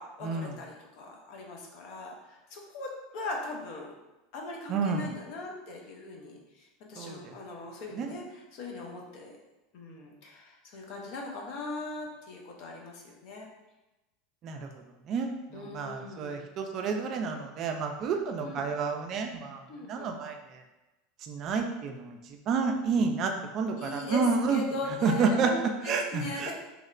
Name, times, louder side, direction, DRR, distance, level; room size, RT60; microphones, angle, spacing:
voice 1, 0.0-3.9 4.3-9.3 9.7-13.5 15.5-16.4 18.4-18.7 19.7-20.1 23.8-26.5, left 2 dB, 60° left, 0 dB, 0.6 m, -40 dB
voice 2, 4.7-5.1 7.0-7.3 7.9-8.1 14.4-14.6 15.1-19.6 19.9-20.4 21.2-22.2 22.5-24.6 25.0-26.5, right 4 dB, 45° right, 4 dB, 0.3 m, -29 dB
2.8 x 2.0 x 2.4 m, 1.0 s
hypercardioid pair, 95°, 0 cm